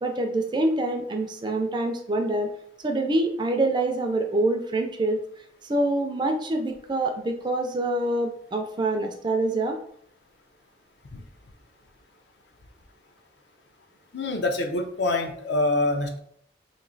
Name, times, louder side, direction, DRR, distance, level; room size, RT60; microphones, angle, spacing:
voice 1, 0.0-2.5 2.8-5.2 5.6-9.8, right 2 dB, 25° right, 4 dB, 0.4 m, -25 dB
voice 2, 14.1-16.2, left 2 dB, 60° left, 5 dB, 0.6 m, -25 dB
3.0 x 2.7 x 3.9 m, 0.66 s
head